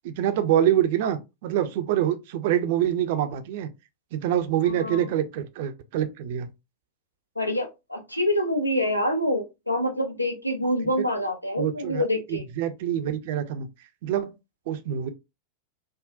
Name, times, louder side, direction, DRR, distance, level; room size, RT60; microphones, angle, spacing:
voice 1, 0.0-3.7 4.1-6.5 11.6-13.7 14.0-14.3 14.7-15.1, right 11 dB, 50° right, 0.4 m, -25 dB
voice 2, 4.6-5.1 7.4-12.4, left 1 dB, 90° left, 0.6 m, -26 dB
3.6 x 2.1 x 2.4 m
figure-of-eight pair, 90°, 0 cm